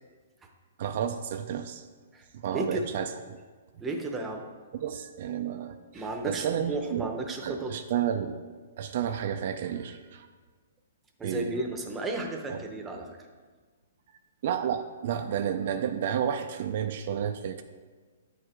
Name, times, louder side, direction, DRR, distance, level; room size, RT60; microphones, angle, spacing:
voice 1, 0.8-1.8 2.3-3.4 4.7-7.2 7.4-8.4 8.8-10.3 11.2-11.6 12.5-12.6 14.4-17.6, right 9 dB, 55° right, 7 dB, 0.3 m, -31 dB
voice 2, 2.5-2.9 3.8-4.5 5.9-7.8 11.2-13.2, right 2 dB, 15° right, 3 dB, 0.7 m, -33 dB
8.3 x 4.8 x 3.3 m, 1.5 s
hypercardioid pair, 140°, 0 cm